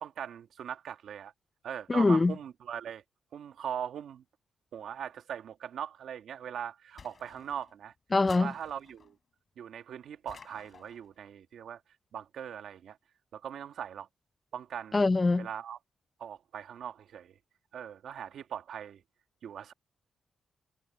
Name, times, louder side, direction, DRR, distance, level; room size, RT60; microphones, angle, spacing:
voice 1, 0.0-1.3 1.6-3.0 3.3-4.2 4.7-7.9 8.3-9.2 9.6-11.8 12.1-13.0 13.3-14.1 14.5-15.0 15.4-15.8 16.2-17.4 17.7-19.0 19.4-19.7, right 9 dB, 75° right, 2.1 m, -40 dB
voice 2, 1.9-2.3 8.1-8.5 14.9-15.5, left 3 dB, 25° left, 0.5 m, -23 dB
sound 1, 7.0-7.8 8.3-9.1 10.3-11.1, left 5 dB, 40° left, 5.7 m, -52 dB
cardioid pair, 125°, 0 cm